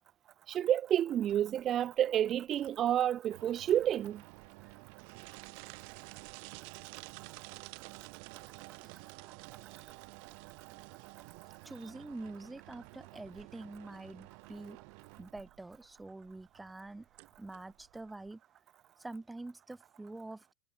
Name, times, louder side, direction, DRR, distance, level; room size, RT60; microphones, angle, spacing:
voice 1, 0.5-4.2, right 11 dB, 30° right, 1.7 m, -29 dB
sound 1, 1.3-18.3, right 39 dB, 45° right, 3.2 m, -51 dB
voice 2, 11.6-14.8 15.2-17.0 17.4-18.4 19.0-20.5, right 2 dB, 5° right, 4.9 m, -46 dB
figure-of-eight pair, 90°, 0 cm